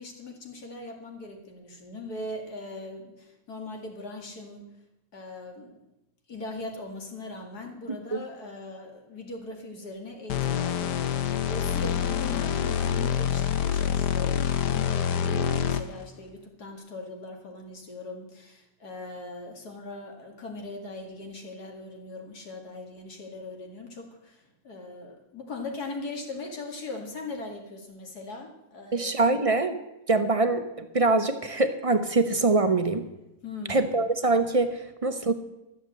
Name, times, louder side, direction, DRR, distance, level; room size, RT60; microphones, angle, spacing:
voice 1, 0.0-4.6 5.1-5.8 6.3-29.1 33.4-34.0, left 2 dB, 70° left, 2 dB, 2.7 m, -40 dB
sound 1, 10.3-16.1, left 8 dB, 85° left, 1.4 m, -26 dB
voice 2, 28.9-29.8 30.1-33.0 33.7-35.3, right 3 dB, 40° right, 9 dB, 0.5 m, -24 dB
13.5 x 7.4 x 7.7 m, 0.91 s
omnidirectional pair, 1.7 m